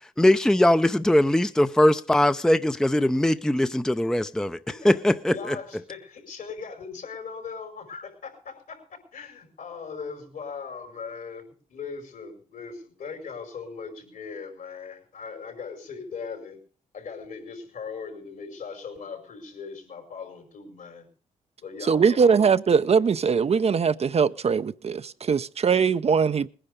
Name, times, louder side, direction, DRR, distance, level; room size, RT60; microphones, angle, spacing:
voice 1, 0.2-4.6 4.8-5.6, left 1 dB, 5° left, 0.6 m, -21 dB
voice 2, 4.7-16.6 16.9-21.1 21.6-22.4, left 5 dB, 75° left, 5.1 m, -39 dB
voice 3, 21.9-26.5, right 6 dB, 45° right, 0.6 m, -21 dB
20.0 x 10.0 x 5.2 m
cardioid pair, 60°, 15 cm